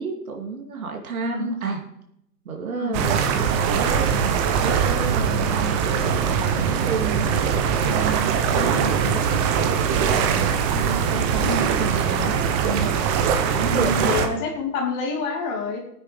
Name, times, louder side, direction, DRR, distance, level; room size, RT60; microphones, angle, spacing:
voice 1, 0.0-1.8 2.4-12.9 13.5-14.3, right 5 dB, 60° right, 3 dB, 3.1 m, -31 dB
voice 2, 1.2-1.6 2.7-3.1 8.5-8.9 11.4-11.7 13.6-15.8, left 3 dB, 25° left, 2 dB, 2.5 m, -28 dB
sound 1, 2.9-14.3, right 7 dB, 20° right, 1.0 m, -22 dB
17.5 x 9.4 x 5.2 m, 0.77 s
hypercardioid pair, 135°, 48 cm